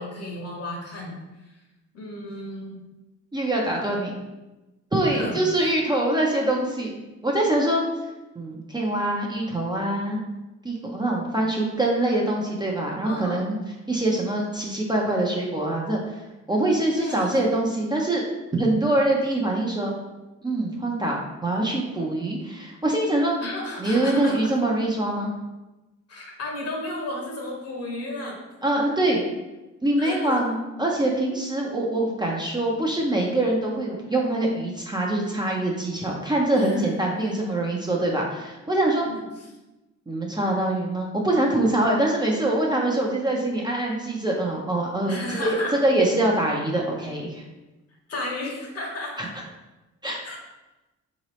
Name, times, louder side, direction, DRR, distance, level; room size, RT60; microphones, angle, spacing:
voice 1, 0.0-1.6 1.9-2.8 5.1-5.4 13.0-13.6 17.0-17.5 23.4-24.5 26.1-28.4 30.0-30.5 36.5-37.5 39.0-39.5 45.1-45.8 48.1-49.3 50.2-50.4, left 1 dB, 55° left, -1 dB, 1.2 m, -33 dB
voice 2, 3.3-4.2 4.9-6.9 7.2-7.8 8.4-10.2 10.6-13.6 13.9-18.2 18.5-19.9 20.4-23.4 23.8-25.3 28.6-29.2 29.8-39.1 40.1-47.4 49.2-49.3 50.0-50.2, right 1 dB, 15° right, -2 dB, 0.5 m, -24 dB
3.8 x 2.9 x 3.0 m, 1.1 s
cardioid pair, 90°, 30 cm